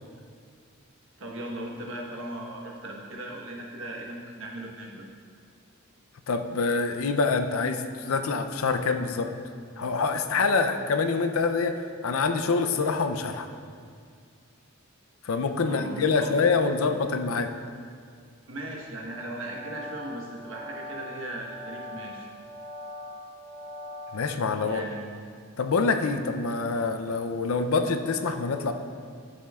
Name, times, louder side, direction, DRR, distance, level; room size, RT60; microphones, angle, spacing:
voice 1, 1.2-5.0 15.6-16.3 18.5-22.3 24.6-25.1, right 1 dB, 65° right, -1 dB, 1.2 m, -38 dB
voice 2, 6.3-9.3 9.8-13.5 15.2-17.5 24.1-24.8 25.6-28.7, left 4 dB, 75° left, 8 dB, 0.5 m, -26 dB
sound 1, 19.1-24.5, left 1 dB, 45° left, 2.0 m, -42 dB
13.5 x 7.2 x 2.4 m, 2.1 s
head